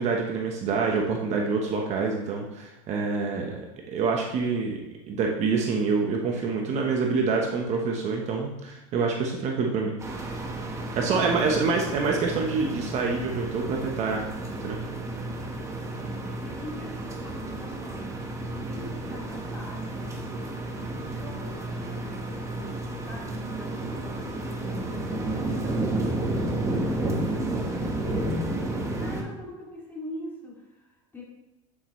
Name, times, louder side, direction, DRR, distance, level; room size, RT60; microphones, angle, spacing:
voice 1, 0.0-4.8 5.1-9.9 11.0-14.3 14.6-14.8, right 4 dB, 40° right, 1 dB, 1.1 m, -26 dB
sound 1, 10.0-29.2, right 1 dB, 15° right, 1.2 m, -32 dB
voice 2, 11.2-12.0 14.4-14.8 15.9-22.8 23.1-31.2, equal, 10° left, -4 dB, 2.4 m, -43 dB
8.5 x 7.7 x 3.2 m, 1.0 s
supercardioid pair, 135°, 18 cm